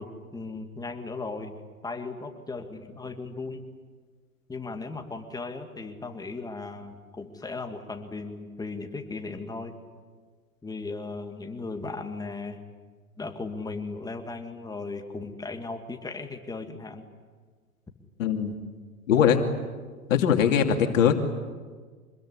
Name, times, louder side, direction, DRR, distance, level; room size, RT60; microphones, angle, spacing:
voice 1, 0.0-3.7 4.5-9.8 10.6-12.6 13.2-17.1, left 3 dB, 10° left, 5 dB, 2.2 m, -37 dB
voice 2, 18.2-18.5 19.1-19.4 20.1-21.1, left 8 dB, 60° left, 4 dB, 2.7 m, -21 dB
25.5 x 21.5 x 9.9 m, 1.5 s
hypercardioid pair, 110°, 44 cm